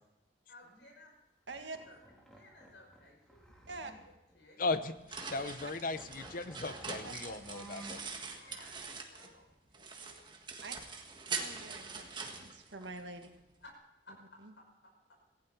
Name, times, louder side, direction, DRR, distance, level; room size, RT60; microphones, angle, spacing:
voice 1, 0.5-1.1 1.5-2.0 2.3-3.8 4.3-4.6 5.2-5.6 8.2-10.3 13.6-13.7 14.1-14.9, left 2 dB, 80° left, 0 dB, 5.8 m, -58 dB
sound 1, 0.6-0.9 1.5-4.4 4.7-4.8 5.1-5.3 5.6-8.1 8.5-8.6 11.8-12.7, right 1 dB, 5° left, 2.8 m, -55 dB
voice 2, 1.5-1.8 3.7-3.9 7.0-7.1 10.6-10.8 11.4-13.3, right 3 dB, 85° right, 5 dB, 1.8 m, -45 dB
voice 3, 4.6-8.0, left 3 dB, 50° left, 12 dB, 0.9 m, -37 dB
sound 2, 4.7-9.4 9.7-13.3, right 4 dB, 25° right, 1.6 m, -43 dB
18.5 x 15.5 x 4.5 m, 0.92 s
head